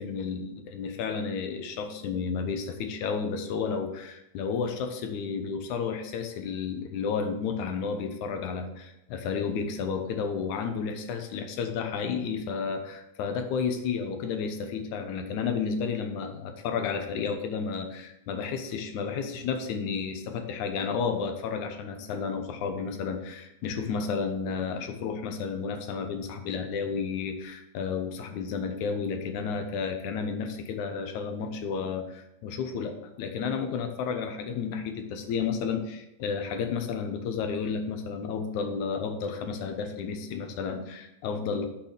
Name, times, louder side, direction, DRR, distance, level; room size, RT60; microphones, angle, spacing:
voice 1, 0.0-41.7, left 5 dB, 85° left, 6 dB, 2.4 m, -32 dB
6.7 x 5.8 x 6.5 m, 0.88 s
omnidirectional pair, 3.3 m